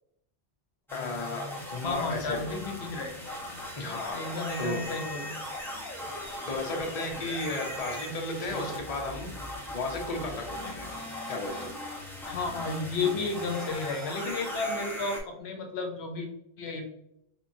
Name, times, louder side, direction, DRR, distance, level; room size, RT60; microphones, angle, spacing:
voice 1, 0.9-2.4 3.8-4.2 4.6-4.8 6.5-9.3 9.7-10.9 11.3-11.7, left 2 dB, 40° left, 1 dB, 0.7 m, -34 dB
sound 1, 0.9-15.2, left 1 dB, 5° left, 0.6 m, -38 dB
voice 2, 1.8-3.1 4.1-5.3 12.2-16.3 16.6-16.9, left 3 dB, 75° left, 3 dB, 0.9 m, -32 dB
3.6 x 3.0 x 2.6 m, 0.80 s
omnidirectional pair, 1.1 m